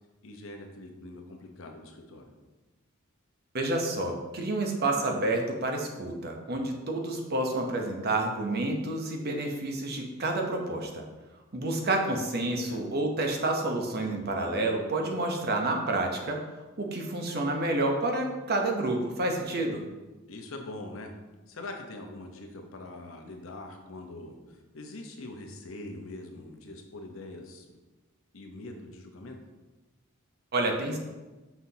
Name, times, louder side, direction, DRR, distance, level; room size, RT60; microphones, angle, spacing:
voice 1, 0.2-2.3 12.6-12.8 20.3-21.1 21.5-27.7 28.3-29.4, left 2 dB, 75° left, 3 dB, 0.8 m, -43 dB
voice 2, 3.5-11.0 11.5-16.4 16.8-19.8 30.5-31.0, right 2 dB, 50° right, 2 dB, 0.8 m, -29 dB
5.8 x 5.8 x 2.8 m, 1.2 s
head